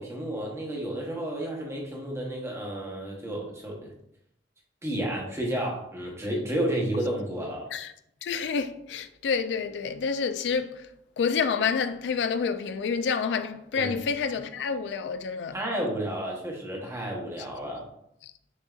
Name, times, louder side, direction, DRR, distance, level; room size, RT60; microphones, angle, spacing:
voice 1, 0.0-3.9 4.8-7.7 13.7-14.0 15.5-17.9, right 1 dB, 15° right, 0.9 m, -31 dB
voice 2, 8.2-10.9 11.2-15.5, left 6 dB, 70° left, 0.3 m, -28 dB
6.3 x 2.7 x 2.4 m
head